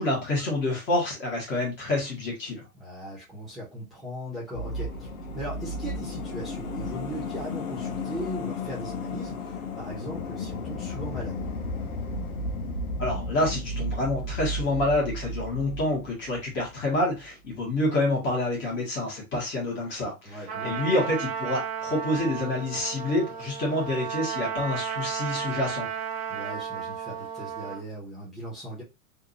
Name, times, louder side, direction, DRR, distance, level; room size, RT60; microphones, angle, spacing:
voice 1, 0.0-2.6 13.0-25.9, left 1 dB, 25° left, 1.6 m, -28 dB
voice 2, 2.8-11.4 20.2-20.8 26.3-28.8, equal, ahead, 1.2 m, -38 dB
sound 1, 4.5-17.0 17.2-17.3, left 1 dB, 75° left, 0.9 m, -34 dB
Trumpet, 20.5-27.8, right 7 dB, 20° right, 0.7 m, -33 dB
3.6 x 2.6 x 2.6 m
hypercardioid pair, 135°, 44 cm